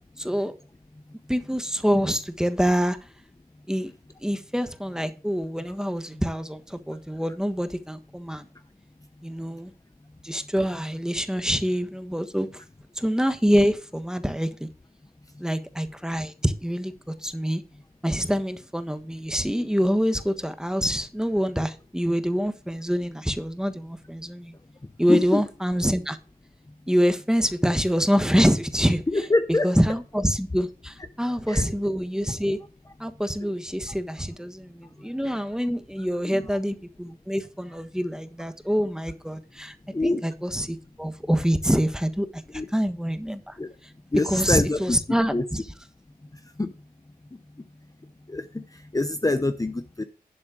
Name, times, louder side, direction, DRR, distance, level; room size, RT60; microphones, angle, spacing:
voice 1, 0.2-0.5 1.3-3.0 3.7-3.9 4.2-8.4 9.2-9.7 10.2-12.5 13.0-14.7 15.4-17.6 18.0-24.5 25.0-26.2 26.9-29.0 29.6-32.6 33.0-39.8 40.0-43.6 44.2-45.6, equal, 5° right, 1.3 m, -25 dB
voice 2, 25.1-25.4 29.1-29.7 31.5-31.6 33.4-33.5 36.2-36.4 39.9-40.2 42.5-42.7 43.6-43.7 44.1-45.0 45.3-45.4 46.6-46.7 48.3-48.6 48.9-50.0, left 2 dB, 20° left, 0.8 m, -25 dB
11.5 x 4.2 x 6.3 m
cardioid pair, 45°, 15 cm